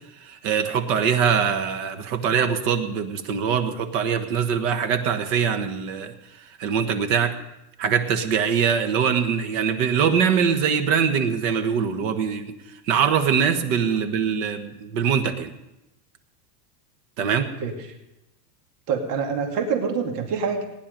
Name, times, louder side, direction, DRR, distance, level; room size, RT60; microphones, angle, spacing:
voice 1, 0.2-6.1 6.6-7.4 7.8-12.5 12.9-15.5 17.2-17.5, right 7 dB, 50° right, 8 dB, 1.4 m, -23 dB
voice 2, 18.9-20.7, right 5 dB, 70° right, 3 dB, 2.7 m, -25 dB
19.0 x 10.5 x 5.2 m, 0.94 s
supercardioid pair, 160°, 49 cm